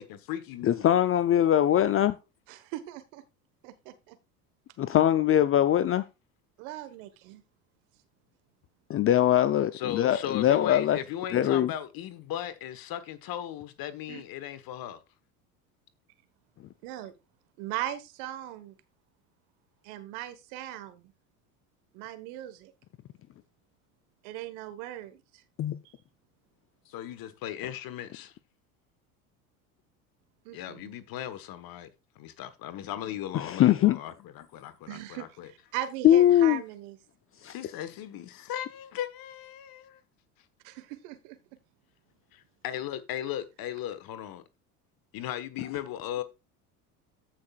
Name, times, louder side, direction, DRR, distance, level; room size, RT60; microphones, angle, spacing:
voice 1, 0.0-1.0 9.7-15.0 26.9-28.3 30.5-31.9 32.2-35.5 37.4-40.0 42.3-44.4 45.1-46.2, left 11 dB, 50° left, 1.3 m, -37 dB
voice 2, 0.6-2.1 4.8-6.0 8.9-11.0 11.3-11.7 25.6-25.7 33.3-34.0 36.0-36.6 37.4-37.5, left 11 dB, 30° left, 0.5 m, -22 dB
voice 3, 2.5-3.2 3.6-4.2 6.6-7.4 14.1-14.2 16.8-17.1 17.6-18.7 19.8-21.1 21.9-22.7 24.2-25.2 25.8-25.9 30.4-30.9 34.9-37.0 40.6-41.4, right 13 dB, 65° right, 1.5 m, -39 dB
14.0 x 5.9 x 2.4 m
hypercardioid pair, 75°, 45 cm